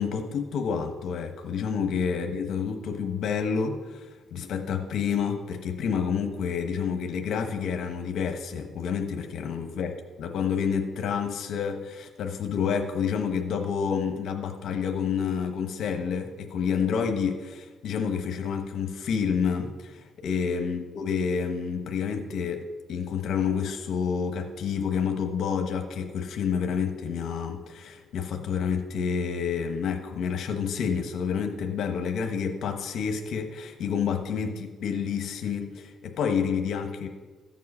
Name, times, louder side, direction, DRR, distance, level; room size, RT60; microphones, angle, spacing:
voice 1, 0.0-37.1, left 6 dB, 70° left, 5 dB, 1.1 m, -29 dB
14.0 x 7.5 x 5.5 m, 1.3 s
cardioid pair, 115°, 0 cm